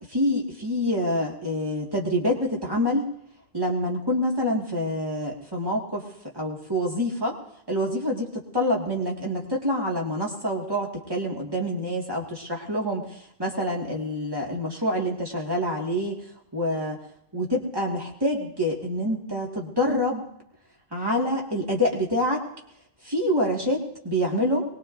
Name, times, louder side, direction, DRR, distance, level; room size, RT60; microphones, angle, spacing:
voice 1, 0.1-3.1 3.5-6.0 6.3-7.4 7.7-8.3 8.5-16.2 16.5-17.0 17.3-20.2 20.9-22.4 23.0-24.6, left 1 dB, 20° right, -2 dB, 2.0 m, -26 dB
23.0 x 19.5 x 2.6 m, 0.73 s
omnidirectional pair, 1.1 m